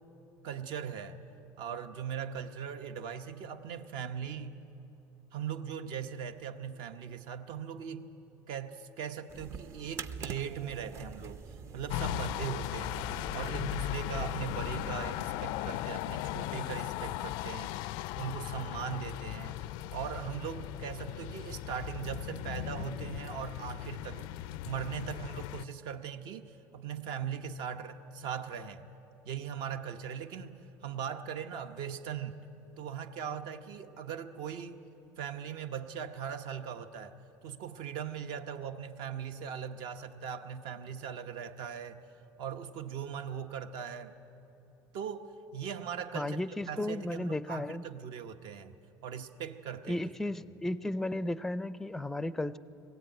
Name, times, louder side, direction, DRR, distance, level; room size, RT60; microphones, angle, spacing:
voice 1, 0.4-1.2 1.6-4.6 5.3-8.1 8.5-13.0 13.3-17.9 18.2-24.3 24.6-28.8 29.2-32.4 32.8-34.8 35.2-42.0 42.4-44.1 44.9-46.4 46.6-48.7 49.0-50.1, right 8 dB, 65° right, 8 dB, 1.1 m, -39 dB
sound 1, 9.3-15.2, right 6 dB, 35° right, 0.6 m, -45 dB
sound 2, 11.9-25.6, left 14 dB, 75° left, 0.4 m, -37 dB
voice 2, 46.1-47.8 49.9-52.6, left 1 dB, 5° left, 15 dB, 0.4 m, -34 dB
20.5 x 16.5 x 9.0 m, 2.9 s
cardioid pair, 140°, 8 cm